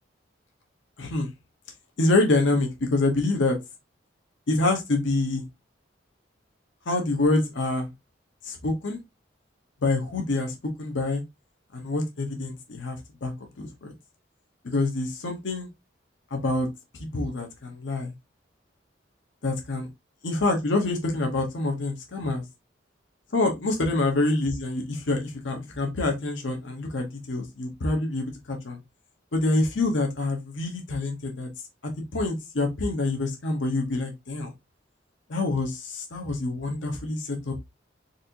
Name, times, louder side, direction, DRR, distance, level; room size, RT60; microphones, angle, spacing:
voice 1, 1.0-1.3 2.0-3.6 4.5-5.4 6.9-7.9 8.4-9.0 9.8-11.2 11.7-13.9 14.6-15.7 16.3-16.7 17.1-18.1 19.4-19.9 20.2-22.4 23.3-28.8 29.3-31.5 32.1-34.5 35.3-37.7, left 2 dB, 80° left, 2 dB, 0.8 m, -26 dB
4.1 x 2.5 x 2.7 m, 0.21 s
head